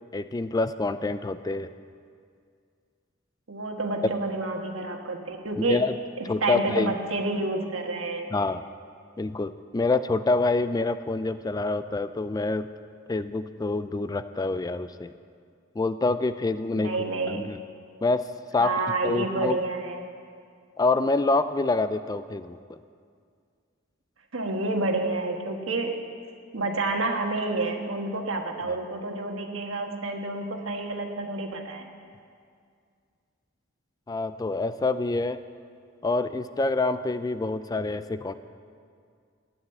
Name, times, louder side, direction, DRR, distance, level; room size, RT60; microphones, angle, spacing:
voice 1, 0.1-1.7 5.6-5.9 6.3-7.0 8.3-8.6 9.2-12.7 13.1-15.1 15.8-16.9 17.3-17.6 18.0-18.2 18.5-18.7 19.0-19.6 20.8-22.6 28.7-28.8 34.1-35.4 36.0-38.3, left 3 dB, 20° left, 12 dB, 0.3 m, -26 dB
voice 2, 3.5-5.9 6.2-8.3 16.8-17.5 18.6-20.0 24.3-26.0 26.5-31.9, right 2 dB, 85° right, 3 dB, 1.5 m, -29 dB
13.0 x 9.7 x 7.8 m, 2.2 s
head